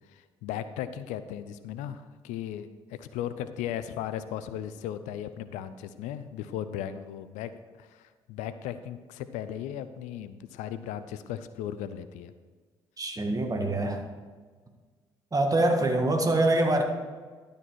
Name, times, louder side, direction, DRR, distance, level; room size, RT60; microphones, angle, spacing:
voice 1, 0.1-7.5 7.8-12.3, left 10 dB, 70° left, 13 dB, 0.5 m, -37 dB
voice 2, 13.0-14.0 15.3-16.8, right 2 dB, 25° right, 4 dB, 1.7 m, -24 dB
12.0 x 5.2 x 6.2 m, 1.5 s
hypercardioid pair, 45°, 13 cm